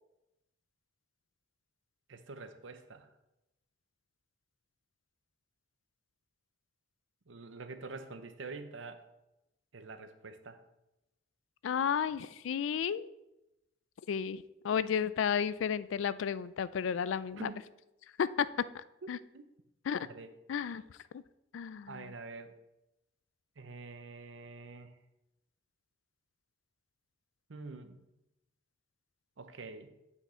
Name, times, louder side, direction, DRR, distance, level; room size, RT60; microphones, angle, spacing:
voice 1, 2.1-3.1 7.3-9.0 9.7-10.6 17.4-17.6 19.0-19.4 20.1-20.3 21.9-22.5 23.6-24.9 27.5-28.0 29.4-29.9, right 3 dB, 80° right, 9 dB, 0.7 m, -46 dB
voice 2, 11.6-13.1 14.1-17.5 18.2-18.5 18.7-19.2 19.9-20.1 20.5-20.8 21.1-21.2 21.5-22.0, left 7 dB, 80° left, 16 dB, 0.3 m, -33 dB
8.3 x 5.8 x 4.3 m, 0.92 s
head